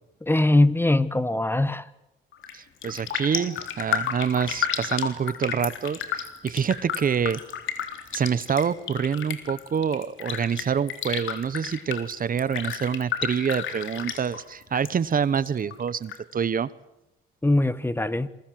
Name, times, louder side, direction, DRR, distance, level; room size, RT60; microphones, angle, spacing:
voice 1, 0.2-1.9 17.4-18.3, left 2 dB, 10° left, 1.4 m, -21 dB
Raindrop, 2.3-2.6 2.8-14.9 15.2-16.2 16.6-16.7, left 9 dB, 75° left, 3.7 m, -32 dB
voice 2, 2.5-7.4 8.1-16.7, right 7 dB, 45° right, 1.2 m, -26 dB
28.0 x 22.0 x 7.8 m
cardioid pair, 90°, 20 cm